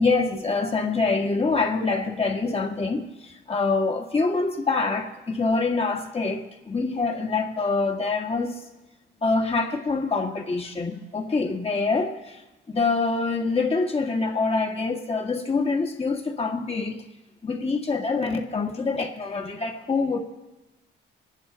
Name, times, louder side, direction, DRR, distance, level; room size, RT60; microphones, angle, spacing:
voice 1, 0.0-8.6 9.2-12.4 12.7-17.0 17.4-20.2, left 3 dB, 30° left, 1.9 m, -25 dB
24.5 x 10.5 x 4.2 m
cardioid pair, 90°, 20 cm